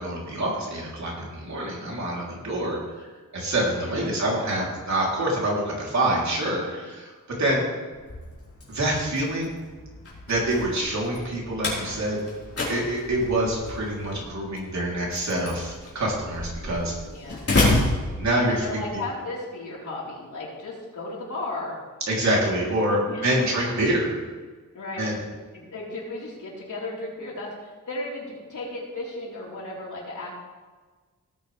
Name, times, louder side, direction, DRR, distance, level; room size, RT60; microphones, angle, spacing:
voice 1, 0.0-2.8 3.3-7.1 7.4-7.6 8.7-9.6 10.3-12.2 12.7-16.9 18.2-18.6 22.1-24.2 25.0-25.2, right 1 dB, 55° right, -3 dB, 3.4 m, -26 dB
voice 2, 3.7-4.2 7.5-7.8 17.0-17.5 18.5-21.7 23.0-23.5 24.7-25.2 25.5-30.3, left 2 dB, 65° left, -5 dB, 4.1 m, -35 dB
Slam, 7.9-18.8, left 2 dB, 45° left, 4.2 m, -30 dB
17.5 x 8.9 x 3.4 m, 1.4 s
wide cardioid pair, 145°, 33 cm